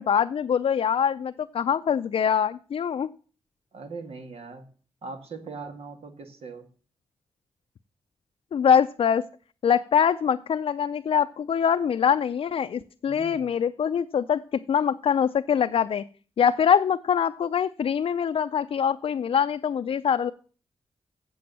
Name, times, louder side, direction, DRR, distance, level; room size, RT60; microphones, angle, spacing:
voice 1, 0.0-3.1 8.5-9.2 9.6-14.4 14.7-16.0 16.4-20.3, left 8 dB, 65° left, 8 dB, 0.4 m, -23 dB
voice 2, 3.7-4.7 5.0-6.7 13.1-13.5, right 4 dB, 80° right, 6 dB, 1.9 m, -40 dB
7.7 x 7.7 x 7.4 m, 0.41 s
cardioid pair, 65°, 10 cm